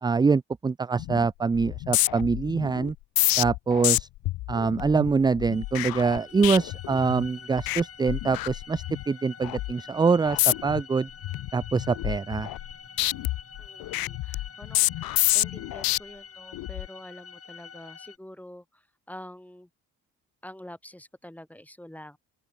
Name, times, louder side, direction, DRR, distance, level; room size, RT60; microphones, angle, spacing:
voice 1, 0.0-2.9 3.4-4.1 4.5-11.1 11.5-12.5, right 4 dB, 15° right, 0.3 m, -24 dB
sound 1, 1.0-1.3 1.5-7.3 7.6-7.8 8.1-9.0 9.4-9.7 10.2-10.8 11.2-12.7 13.0-16.0 16.5-16.9, left 18 dB, 80° left, 0.9 m, -28 dB
sound 2, 5.5-18.2, left 6 dB, 40° left, 7.7 m, -47 dB
voice 2, 13.6-19.7 20.4-22.2, left 1 dB, 5° left, 5.8 m, -46 dB
open air
cardioid pair, 85°, 35 cm